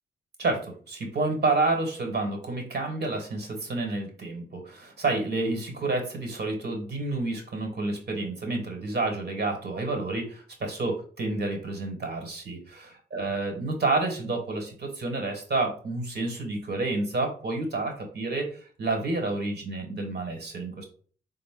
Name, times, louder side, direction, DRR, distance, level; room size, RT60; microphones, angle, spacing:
voice 1, 0.4-12.7 13.1-20.9, right 3 dB, 55° right, 3 dB, 1.3 m, -29 dB
3.8 x 2.1 x 3.6 m, 0.43 s
supercardioid pair, 40°, 20 cm